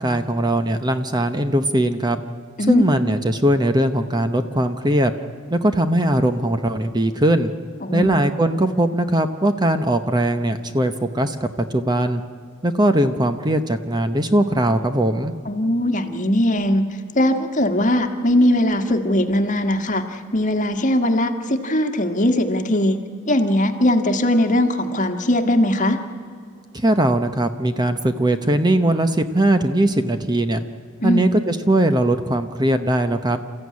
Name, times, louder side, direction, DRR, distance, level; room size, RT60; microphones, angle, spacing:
voice 1, 0.0-2.2 2.7-5.1 5.5-7.5 7.9-12.2 12.6-15.3 26.7-30.6 31.0-33.4, right 1 dB, 20° right, 8 dB, 0.8 m, -20 dB
voice 2, 7.8-8.2 15.4-16.8 17.1-23.0 23.3-26.0 31.0-31.3, left 1 dB, 40° left, 6 dB, 1.7 m, -19 dB
29.0 x 14.5 x 9.6 m, 2.2 s
head